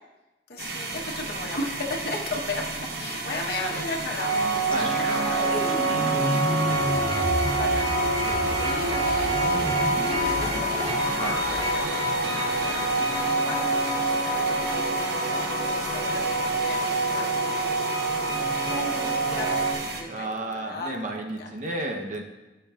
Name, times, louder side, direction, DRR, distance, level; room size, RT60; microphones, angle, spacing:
voice 1, 0.5-6.5 6.9-11.0 11.5-11.9 12.6-12.8 13.4-13.9 14.2-17.5 18.2-20.3 20.5-20.9 21.4-21.5, left 2 dB, 60° left, -1 dB, 1.2 m, -36 dB
sound 1, 0.6-20.0, right 3 dB, 60° right, 1.1 m, -34 dB
sound 2, 4.2-19.7, right 2 dB, 90° right, 1.9 m, -26 dB
sound 3, 4.6-13.7 13.9-14.1 14.5-14.9, left 1 dB, 5° left, 0.9 m, -33 dB
voice 2, 5.9-6.5 11.2-11.4 20.1-22.2, right 2 dB, 40° right, 2 dB, 0.9 m, -33 dB
13.0 x 6.9 x 2.5 m, 1.1 s
head